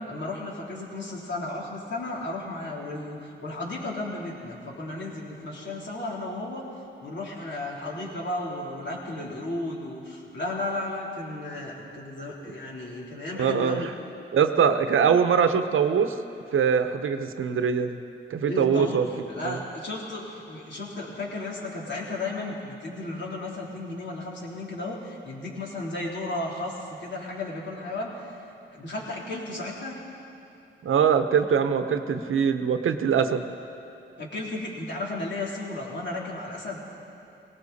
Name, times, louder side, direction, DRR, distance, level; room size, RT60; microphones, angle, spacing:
voice 1, 0.1-13.9 18.5-28.3 28.7-30.0 34.2-36.8, left 2 dB, 60° left, -4 dB, 3.5 m, -34 dB
voice 2, 13.4-13.9 14.3-16.1 16.5-18.0 18.3-19.1 19.4-19.6 30.8-33.5, right 7 dB, 85° right, 8 dB, 0.9 m, -22 dB
18.5 x 18.5 x 4.2 m, 3.0 s
cardioid pair, 60°, 20 cm